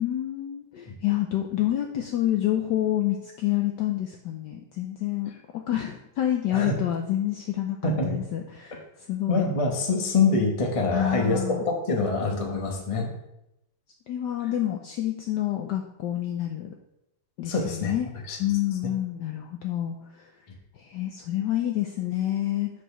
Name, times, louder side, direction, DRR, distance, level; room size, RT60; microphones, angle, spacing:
voice 1, 0.0-7.8 8.1-8.8 9.1-9.4 10.9-11.6 12.3-12.8 14.1-16.7 17.4-18.1 18.4-20.2 20.8-22.7, left 12 dB, 80° left, 3 dB, 0.9 m, -28 dB
voice 2, 7.8-8.2 9.3-13.1 17.4-17.9 18.3-18.4, left 3 dB, 55° left, 1 dB, 0.3 m, -25 dB
5.0 x 4.4 x 5.6 m, 0.86 s
omnidirectional pair, 2.4 m